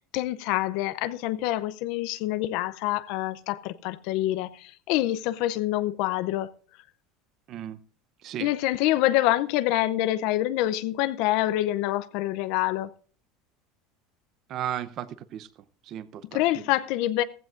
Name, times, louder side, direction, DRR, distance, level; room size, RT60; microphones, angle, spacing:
voice 1, 0.1-6.5 8.4-12.9 16.3-17.2, left 15 dB, 60° left, 0.5 m, -26 dB
voice 2, 7.5-7.8 8.2-8.5 14.5-15.5 15.9-16.4, right 10 dB, 40° right, 0.7 m, -34 dB
15.5 x 15.0 x 2.5 m
cardioid pair, 155°, 0 cm